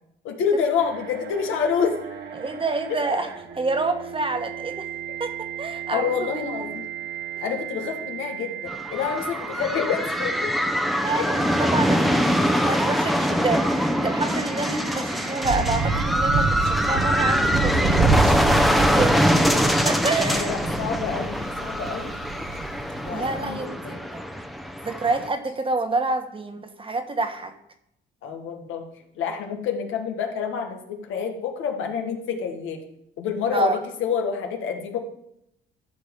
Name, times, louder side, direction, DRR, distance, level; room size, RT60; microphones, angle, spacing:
voice 1, 0.2-1.9 2.9-3.0 5.1-5.2 5.9-6.9 7.4-10.5 11.1-11.2 15.0-15.4 20.2-22.1 23.0-24.0 28.2-28.8 29.2-32.8 33.2-33.7 34.0-35.0, left 6 dB, 90° left, 3 dB, 1.6 m, -28 dB
sound 1, 0.8-16.1, right 10 dB, 60° right, 1.2 m, -37 dB
voice 2, 2.3-3.3 3.6-4.9 5.2-6.8 10.8-19.3 19.6-20.6 23.1-24.2 24.8-27.5 33.5-33.8, right 3 dB, 25° right, 7 dB, 1.3 m, -28 dB
sound 2, 8.7-25.3, equal, ahead, 0.8 m, -23 dB
sound 3, 15.4-23.3, right 4 dB, 75° right, 1.3 m, -27 dB
12.5 x 5.3 x 5.2 m, 0.78 s
cardioid pair, 90°, 20 cm